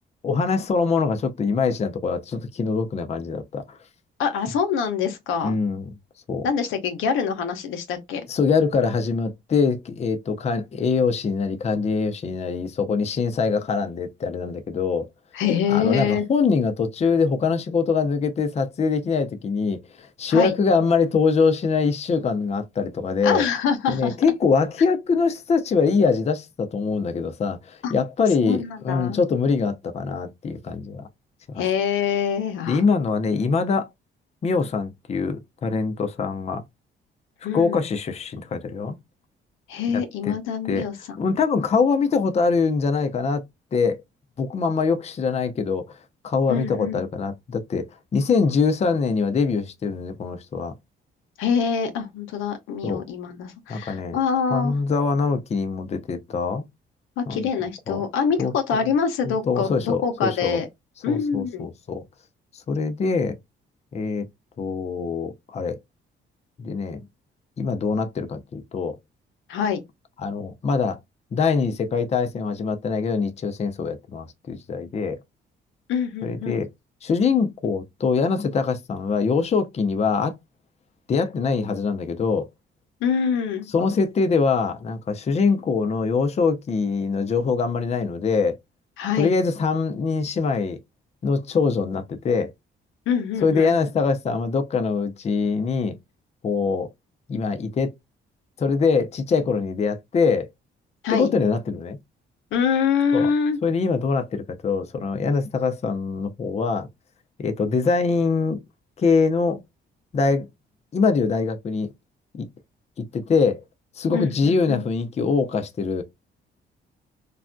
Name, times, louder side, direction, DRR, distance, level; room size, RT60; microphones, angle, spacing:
voice 1, 0.2-3.8 5.4-5.9 6.3-6.5 8.3-15.1 15.7-23.4 23.9-31.1 31.5-31.6 32.7-33.9 34.4-36.6 37.5-39.0 39.9-40.3 40.7-40.9 41.2-43.4 43.7-44.0 44.4-45.8 46.2-47.9 48.1-50.7 52.8-53.0 53.7-54.2 54.5-56.6 57.3-57.5 57.9-58.0 58.4-58.8 59.2-60.6 61.1-62.0 62.7-63.4 63.9-64.3 64.6-65.8 66.6-67.0 67.6-69.0 70.2-71.0 71.3-75.2 76.2-76.7 77.0-80.3 81.1-82.5 83.7-88.6 89.2-90.8 91.2-92.5 93.4-96.0 96.4-96.9 97.3-97.9 98.6-100.5 101.1-102.0 103.1-103.3 103.6-106.9 107.4-108.6 109.0-109.6 110.1-110.5 110.9-111.9 112.3-112.5 113.0-113.6 114.0-116.0, left 5 dB, 35° left, 0.5 m, -23 dB
voice 2, 4.2-5.5 6.4-8.2 15.3-16.2 20.3-20.5 23.2-24.1 27.8-27.9 28.4-29.2 31.6-32.8 37.4-37.8 39.7-40.9 46.5-47.0 51.4-54.7 57.2-60.7 61.0-61.7 69.5-69.8 75.9-76.6 83.0-83.7 89.0-89.3 93.1-93.7 101.0-101.3 102.5-103.6 114.1-114.8, left 6 dB, 90° left, 0.7 m, -25 dB
3.2 x 2.3 x 2.5 m
cardioid pair, 90°, 20 cm